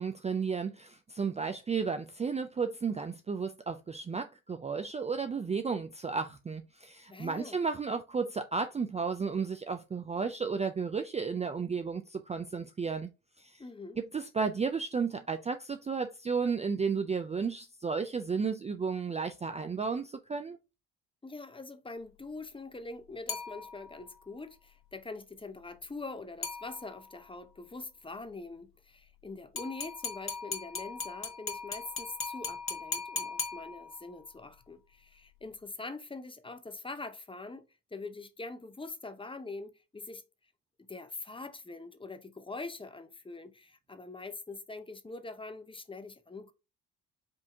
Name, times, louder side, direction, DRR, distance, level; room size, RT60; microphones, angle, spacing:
voice 1, 0.0-13.1 13.4-13.6 14.0-20.6, right 5 dB, 20° right, 0.4 m, -33 dB
voice 2, 7.1-7.6 13.6-14.0 21.2-40.2 40.8-46.5, left 3 dB, 15° left, 0.7 m, -44 dB
sound 1, 23.3-24.1 26.4-27.2 29.6-34.2, left 5 dB, 35° left, 1.3 m, -39 dB
5.2 x 2.8 x 3.4 m
supercardioid pair, 80°, 36 cm